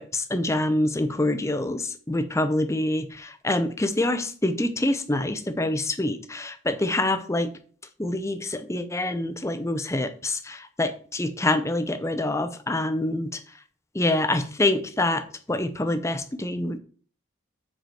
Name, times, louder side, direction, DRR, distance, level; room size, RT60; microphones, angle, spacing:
voice 1, 0.0-7.5 8.0-13.4 13.9-16.8, left 1 dB, 15° left, 9 dB, 0.7 m, -26 dB
6.7 x 4.9 x 6.2 m, 0.44 s
head